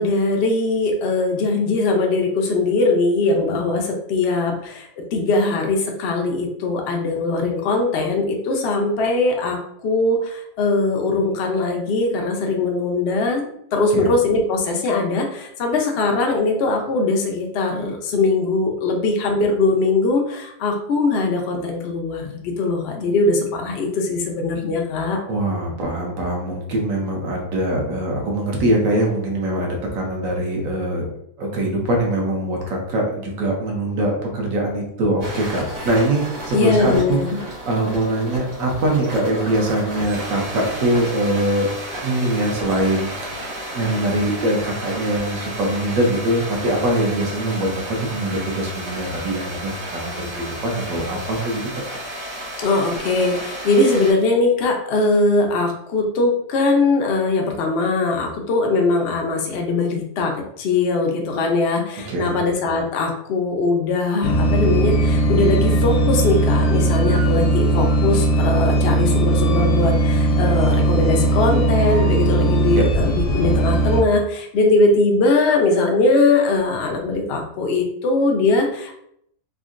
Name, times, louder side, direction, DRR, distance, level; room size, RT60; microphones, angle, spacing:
voice 1, 0.0-13.4 13.7-25.2 36.5-37.4 52.6-78.9, left 3 dB, 70° left, 2 dB, 0.6 m, -20 dB
voice 2, 25.3-31.1 31.4-37.2 37.5-41.7 42.0-51.7 62.1-62.4 72.8-72.9, right 1 dB, 65° right, 0 dB, 1.0 m, -23 dB
sound 1, 35.2-54.1, right 1 dB, 80° right, 1.6 m, -32 dB
sound 2, 64.2-74.0, right 1 dB, 85° left, 1.2 m, -18 dB
3.7 x 2.1 x 2.4 m, 0.72 s
omnidirectional pair, 1.7 m